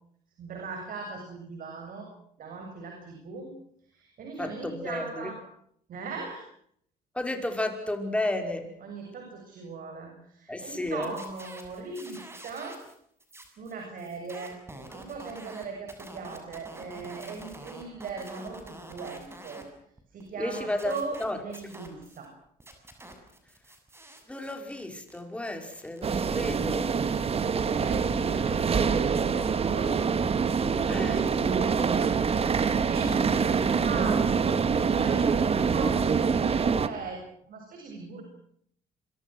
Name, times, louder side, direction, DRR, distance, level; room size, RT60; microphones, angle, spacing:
voice 1, 0.4-2.1 2.4-3.5 3.9-5.4 5.9-6.4 8.8-12.8 13.6-14.6 14.9-19.7 20.1-22.3 27.3-30.0 30.8-38.2, right 4 dB, 55° right, 3 dB, 7.6 m, -39 dB
voice 2, 4.4-5.3 7.1-8.7 10.5-11.1 20.4-20.9 21.2-21.4 21.6-21.7 24.3-26.9 30.9-31.2, left 1 dB, 5° left, 5 dB, 5.4 m, -32 dB
sound 1, 10.9-12.9 13.2-19.6 20.0-22.3 22.6-30.1, right 1 dB, 15° right, 7.2 m, -48 dB
sound 2, 26.0-36.9, right 6 dB, 35° right, 2.0 m, -25 dB
27.0 x 24.5 x 6.4 m, 0.67 s
cardioid pair, 110°, 17 cm